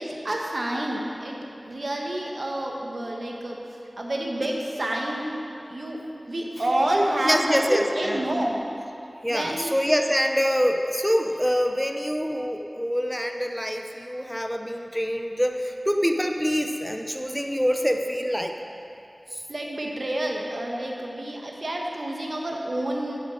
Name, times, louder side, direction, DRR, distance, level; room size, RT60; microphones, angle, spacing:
voice 1, 0.0-1.4 1.7-3.6 4.0-5.4 5.7-6.0 6.3-8.5 9.3-9.8 19.5-23.2, right 1 dB, 65° right, -1 dB, 1.3 m, -28 dB
voice 2, 7.2-8.2 9.2-18.5 19.3-19.4, equal, ahead, 4 dB, 0.7 m, -25 dB
7.9 x 7.2 x 7.7 m, 2.8 s
wide cardioid pair, 60°, 0 cm